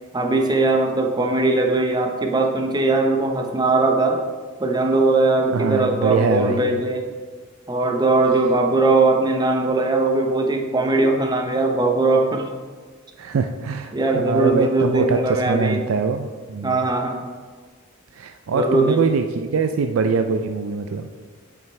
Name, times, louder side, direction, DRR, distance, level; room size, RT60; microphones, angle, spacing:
voice 1, 0.1-4.2 4.6-7.1 7.7-12.5 13.9-15.8 16.6-17.3 18.5-19.0, right 2 dB, 20° right, 3 dB, 0.7 m, -20 dB
voice 2, 5.5-6.8 13.2-16.8 18.1-21.1, right 5 dB, 75° right, 6 dB, 0.4 m, -23 dB
8.9 x 6.0 x 3.3 m, 1.5 s
head